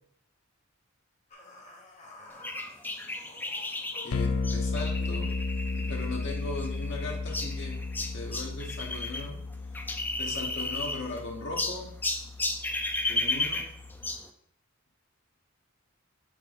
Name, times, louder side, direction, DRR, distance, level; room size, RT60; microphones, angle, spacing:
sound 1, 1.3-4.4, left 2 dB, 35° left, 1.1 m, -49 dB
sound 2, 2.4-9.3 9.5-11.2 11.6-14.3, left 2 dB, 10° left, 0.4 m, -34 dB
voice 1, 4.0-5.3 5.7-7.8 8.1-9.4 10.2-11.9 13.1-13.6, left 2 dB, 60° left, 0 dB, 1.1 m, -38 dB
sound 3, 4.1-14.1, left 3 dB, 85° left, 0.5 m, -34 dB
6.4 x 4.1 x 3.9 m, 0.67 s
head